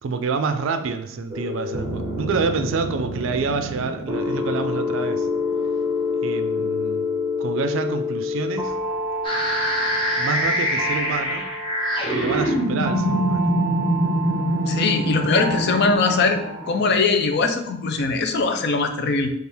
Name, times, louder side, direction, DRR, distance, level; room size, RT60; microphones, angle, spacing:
voice 1, 0.0-5.3 6.2-7.1 7.4-8.7 10.1-11.5 12.1-13.5, right 4 dB, 70° right, 8 dB, 0.4 m, -27 dB
sound 1, 1.3-16.9, left 2 dB, 20° right, 0.6 m, -28 dB
sound 2, 9.2-17.2, equal, 25° left, 0.9 m, -24 dB
voice 2, 14.7-16.4 16.7-19.3, left 4 dB, 55° left, 6 dB, 0.5 m, -21 dB
3.4 x 2.4 x 4.3 m, 0.75 s
head